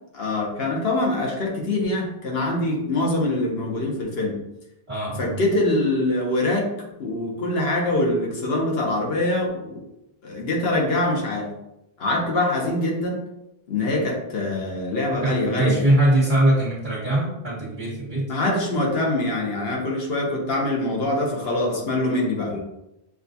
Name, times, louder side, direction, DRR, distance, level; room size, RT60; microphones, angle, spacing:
voice 1, 0.1-4.3 5.2-6.7 7.0-9.8 10.2-11.5 12.0-13.2 13.7-15.9 18.3-22.6, left 2 dB, 75° left, -2 dB, 1.1 m, -24 dB
voice 2, 4.9-5.3 15.2-18.3, right 1 dB, 25° right, -11 dB, 1.3 m, -21 dB
6.2 x 2.3 x 2.7 m, 0.88 s
omnidirectional pair, 1.1 m